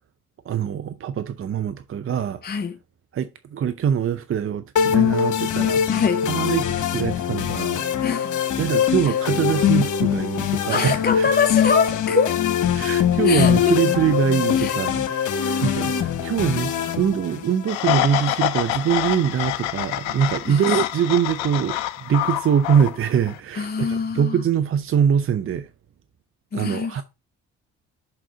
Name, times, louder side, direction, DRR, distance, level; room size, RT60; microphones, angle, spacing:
voice 1, 0.4-2.6 3.1-5.9 6.3-7.8 8.6-11.3 12.7-25.7 26.5-27.0, right 8 dB, 40° right, 0.6 m, -23 dB
voice 2, 2.4-2.7 5.9-6.2 8.0-8.4 9.0-9.2 10.7-12.4 13.2-13.8 14.5-14.8 15.4-16.1 20.5-20.7 23.6-24.4 26.5-27.0, left 6 dB, 25° left, 0.7 m, -24 dB
sound 1, 4.8-17.8, left 9 dB, 60° left, 1.2 m, -22 dB
sound 2, 17.7-23.4, left 14 dB, 85° left, 0.6 m, -26 dB
5.9 x 3.9 x 5.6 m
hypercardioid pair, 50°, 35 cm